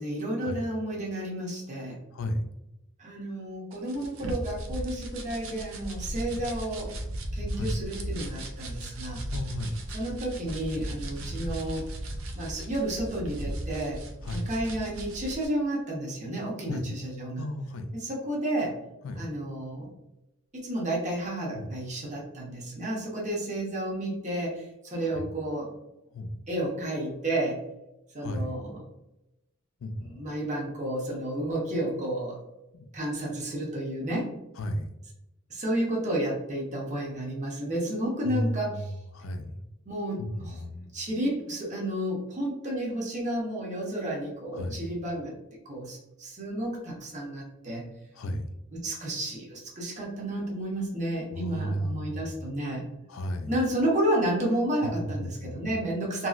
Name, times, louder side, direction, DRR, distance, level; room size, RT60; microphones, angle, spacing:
voice 1, 0.0-2.0 3.0-6.9 7.4-9.2 9.9-11.8 12.3-14.0 14.3-17.5 17.9-18.7 19.1-19.9 20.5-25.7 26.5-27.6 28.1-28.8 30.0-32.4 32.9-34.3 35.5-38.9 39.9-40.6 40.9-45.3 45.6-47.8 48.7-52.8 53.5-56.3, right 1 dB, 35° right, -3 dB, 0.8 m, -31 dB
voice 2, 2.1-2.5 6.3-6.4 7.5-7.7 9.3-9.8 11.3-11.4 14.2-14.4 16.7-16.8 17.3-17.9 19.0-19.2 21.5-21.7 25.1-25.3 26.1-26.3 28.2-28.5 29.8-30.2 32.7-32.9 34.6-34.9 38.2-38.9 39.1-39.5 40.2-40.9 44.5-44.9 48.1-48.5 51.3-52.3 53.1-53.6 55.0-55.8, left 1 dB, 75° left, 7 dB, 0.4 m, -33 dB
sound 1, 3.7-15.5, right 1 dB, 90° right, 0.5 m, -36 dB
2.9 x 2.7 x 2.4 m, 0.91 s
head